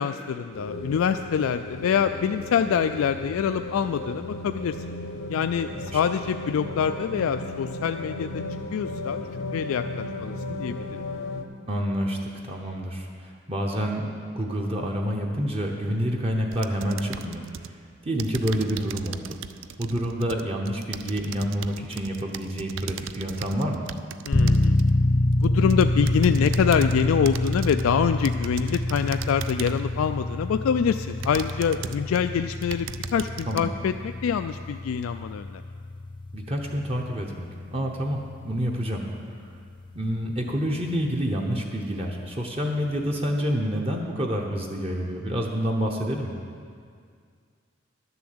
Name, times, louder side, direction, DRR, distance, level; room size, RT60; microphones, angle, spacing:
voice 1, 0.0-4.8 5.3-8.3 8.7-9.3 9.5-11.0 24.2-24.8 25.4-35.6, left 7 dB, 90° left, 9 dB, 0.3 m, -25 dB
sound 1, 0.5-11.4, left 2 dB, 75° left, 0.8 m, -35 dB
voice 2, 11.7-17.4 18.0-19.4 19.8-23.9 33.5-33.6 36.3-39.0 39.9-46.3, equal, 30° right, 0 dB, 0.9 m, -28 dB
sound 2, 16.5-17.7 18.2-24.9 25.4-27.0 27.3-27.9 28.2-29.9 30.5-30.6 31.2-32.2 32.5-33.6, right 8 dB, 65° right, 0.4 m, -38 dB
sound 3, 24.3-41.1, left 1 dB, 25° left, 0.4 m, -27 dB
11.5 x 7.0 x 7.9 m, 2.2 s
head